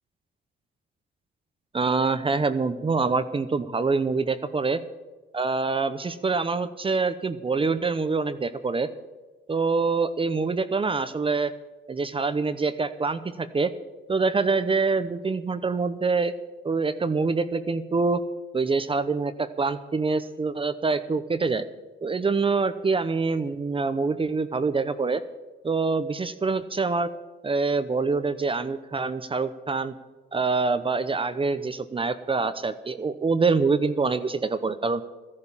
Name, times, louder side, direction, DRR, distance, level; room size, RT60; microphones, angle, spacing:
voice 1, 1.7-4.8 5.3-8.9 9.5-11.5 11.9-13.7 14.1-16.3 16.6-18.2 18.5-21.6 22.0-25.2 25.6-27.1 27.4-29.9 30.3-35.0, right 4 dB, 25° right, 11 dB, 0.8 m, -25 dB
14.0 x 11.0 x 7.3 m, 1.2 s
cardioid pair, 90°, 20 cm